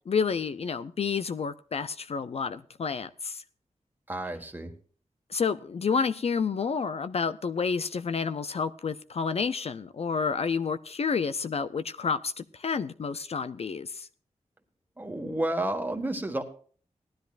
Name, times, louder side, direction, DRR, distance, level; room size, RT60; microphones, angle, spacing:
voice 1, 0.1-3.4 5.3-14.1, left 5 dB, 55° left, 12 dB, 0.5 m, -30 dB
voice 2, 4.1-4.7 15.0-16.4, right 1 dB, 15° right, 4 dB, 1.6 m, -31 dB
18.0 x 12.5 x 2.5 m, 0.43 s
wide cardioid pair, 105°, 13 cm